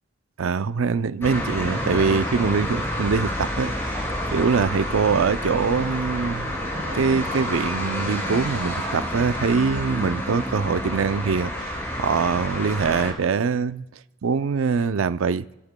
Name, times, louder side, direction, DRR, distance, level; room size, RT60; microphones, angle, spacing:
voice 1, 0.4-3.7 4.3-6.5 6.9-13.8 14.2-15.4, right 5 dB, 85° right, 0.5 m, -23 dB
sound 1, 1.2-13.1, left 1 dB, 15° left, 2.9 m, -29 dB
sound 2, 4.7-10.1, right 2 dB, 65° right, 1.3 m, -41 dB
27.0 x 13.0 x 2.2 m
head